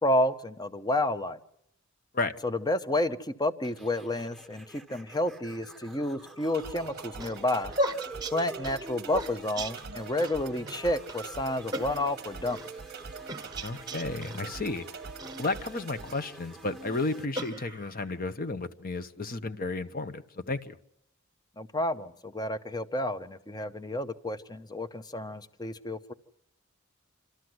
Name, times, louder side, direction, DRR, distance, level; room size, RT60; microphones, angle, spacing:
voice 1, 0.0-1.4 2.4-7.7 8.3-12.6 21.6-26.1, left 1 dB, 20° left, 12 dB, 0.7 m, -30 dB
sound 1, 3.6-17.2, right 3 dB, ahead, 1.4 m, -47 dB
sound 2, 6.5-16.1, right 5 dB, 50° right, 0.8 m, -44 dB
sound 3, 6.8-10.4 10.7-10.8 11.1-11.3 11.7-12.7 13.3-14.4 15.2-16.3 16.9-18.1, equal, 20° right, 1.4 m, -36 dB
voice 2, 13.6-14.9 15.4-20.8, left 3 dB, 45° left, 11 dB, 0.9 m, -33 dB
27.5 x 13.0 x 7.9 m, 0.79 s
head